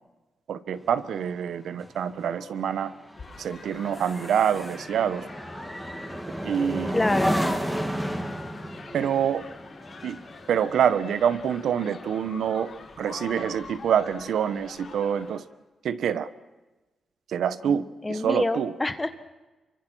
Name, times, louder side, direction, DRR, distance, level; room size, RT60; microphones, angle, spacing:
voice 1, 0.5-2.9 3.4-5.3 6.4-7.0 8.9-9.4 10.0-10.2 10.5-12.7 13.0-15.4 15.8-16.3 17.3-18.7, right 8 dB, 80° right, 13 dB, 1.1 m, -26 dB
sound 1, 0.8-12.5 12.9-13.2, equal, 5° right, 2.6 m, -33 dB
sound 2, 3.1-15.4, left 4 dB, 45° left, 4.9 m, -45 dB
voice 2, 6.9-7.4 17.6-19.2, left 2 dB, 15° left, 10 dB, 1.4 m, -27 dB
27.0 x 24.0 x 6.3 m, 1.2 s
wide cardioid pair, 130°, 0 cm